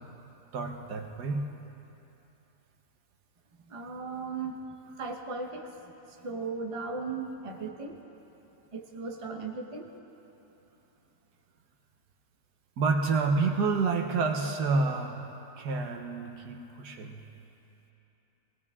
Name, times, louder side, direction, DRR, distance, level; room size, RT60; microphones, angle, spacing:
voice 1, 0.5-1.4 12.8-15.2 15.6-17.2, right 4 dB, 80° right, 3 dB, 1.6 m, -28 dB
voice 2, 3.6-4.6 5.0-8.1 8.7-9.9, right 4 dB, 25° right, 2 dB, 0.9 m, -37 dB
21.0 x 18.5 x 3.6 m, 2.9 s
omnidirectional pair, 1.7 m